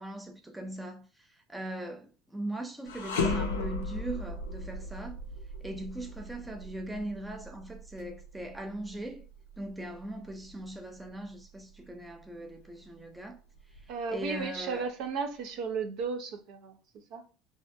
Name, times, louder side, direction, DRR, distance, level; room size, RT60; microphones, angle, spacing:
voice 1, 0.0-5.2 5.6-9.2 9.6-13.4 13.7-14.9, right 1 dB, 10° right, 0.5 m, -40 dB
sound 1, 2.9-12.1 12.5-12.7 13.6-14.4, left 3 dB, 85° left, 0.4 m, -37 dB
voice 2, 13.9-16.8 17.1-17.2, right 5 dB, 65° right, 0.5 m, -34 dB
2.5 x 2.1 x 2.5 m
hypercardioid pair, 85°, 0 cm